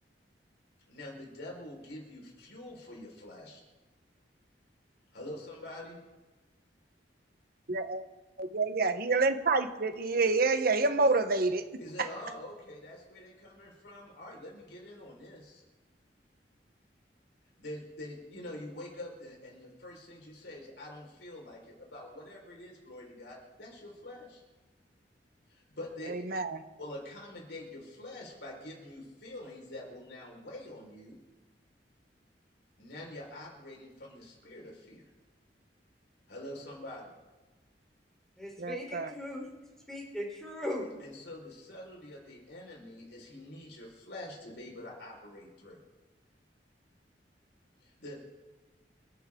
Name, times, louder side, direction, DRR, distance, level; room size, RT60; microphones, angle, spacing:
voice 1, 0.9-3.6 5.1-6.0 11.8-15.6 17.6-24.4 25.5-26.2 26.8-31.2 32.8-35.1 36.3-37.2 41.0-45.8 47.8-48.2, left 1 dB, 85° left, 4.9 m, -45 dB
voice 2, 7.7-8.0 8.4-11.6 26.1-26.6 38.6-39.1, right 3 dB, 60° right, 1.1 m, -28 dB
voice 3, 38.4-39.5 39.9-40.9, left 1 dB, 5° left, 3.9 m, -38 dB
29.0 x 10.5 x 3.8 m
head